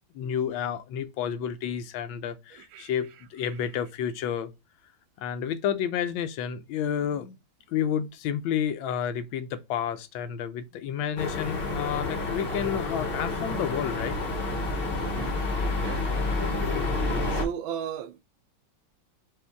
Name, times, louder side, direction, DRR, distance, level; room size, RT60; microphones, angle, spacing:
voice 1, 0.1-4.5 5.2-7.4 7.7-14.2 15.7-15.9 16.4-16.8, left 8 dB, 85° left, 1.4 m, -30 dB
voice 2, 2.5-3.6 15.0-16.1 17.3-18.2, right 8 dB, 85° right, 1.4 m, -37 dB
sound 1, 11.2-17.4, left 2 dB, 45° left, 0.8 m, -29 dB
5.1 x 2.5 x 3.4 m
omnidirectional pair, 2.1 m